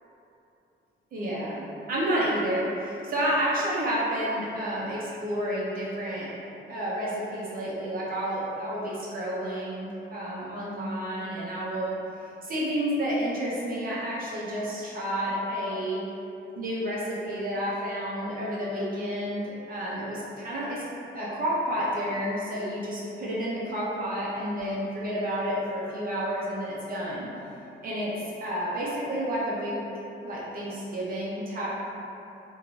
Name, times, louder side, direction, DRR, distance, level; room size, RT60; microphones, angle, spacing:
voice 1, 1.1-6.3 6.7-12.0 12.4-16.0 16.6-20.8 21.1-27.3 27.8-28.1 28.4-29.9 30.2-31.7, equal, 45° right, -6 dB, 0.5 m, -30 dB
2.5 x 2.2 x 3.0 m, 2.9 s
cardioid pair, 120°, 20 cm